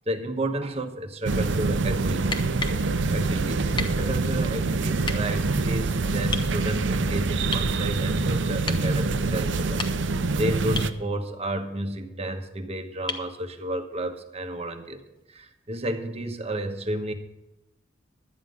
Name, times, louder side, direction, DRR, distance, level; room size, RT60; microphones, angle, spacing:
voice 1, 0.1-2.5 3.1-10.1 10.4-17.1, right 1 dB, 35° right, 6 dB, 1.1 m, -31 dB
sound 1, 1.2-10.9, right 3 dB, 70° right, 0.6 m, -25 dB
sound 2, 2.3-2.8 3.8-4.0 5.0-5.2 6.3-6.5 7.5-7.7 8.7-8.9 9.6-10.2 10.8-11.0 13.1-13.3 15.2-15.3, left 4 dB, 25° left, 1.1 m, -32 dB
12.0 x 9.5 x 5.3 m, 0.92 s
head